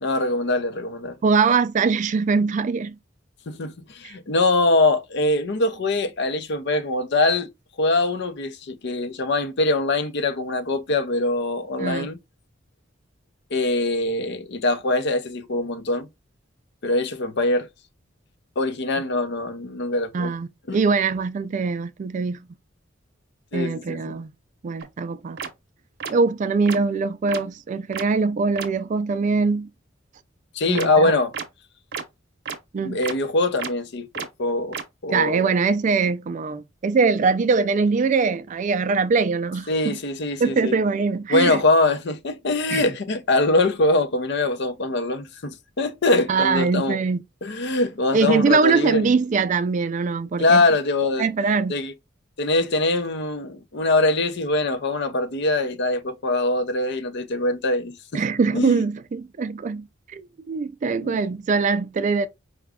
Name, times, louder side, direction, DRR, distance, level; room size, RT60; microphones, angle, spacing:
voice 1, 0.0-1.2 3.5-7.5 7.8-12.2 13.5-16.1 16.8-17.7 18.6-20.3 20.7-20.8 23.5-24.1 30.5-31.3 32.8-34.8 35.0-35.5 39.7-40.8 41.3-47.0 47.4-49.1 50.4-51.3 51.7-51.9 52.4-58.0 58.5-58.7 61.0-61.2, left 2 dB, 60° left, 0.6 m, -23 dB
voice 2, 1.2-3.0 4.0-4.1 11.8-12.1 20.1-22.5 23.5-24.3 24.6-25.4 26.1-29.7 30.7-31.1 32.7-33.0 35.1-40.0 40.4-41.6 42.7-42.8 46.3-47.2 48.1-50.6 51.2-51.7 58.1-62.3, right 4 dB, 40° right, 0.3 m, -22 dB
sound 1, 24.8-24.9 25.4-25.5 26.0-26.1 26.7-26.8 27.3-27.4 27.9-28.0 28.6-28.7 30.7-30.9 31.3-31.4 31.9-32.0 32.5-32.6 33.0-33.1 33.6-33.7 34.1-34.3 34.7-34.8, right 6 dB, 60° right, 0.7 m, -30 dB
4.9 x 2.2 x 3.5 m
head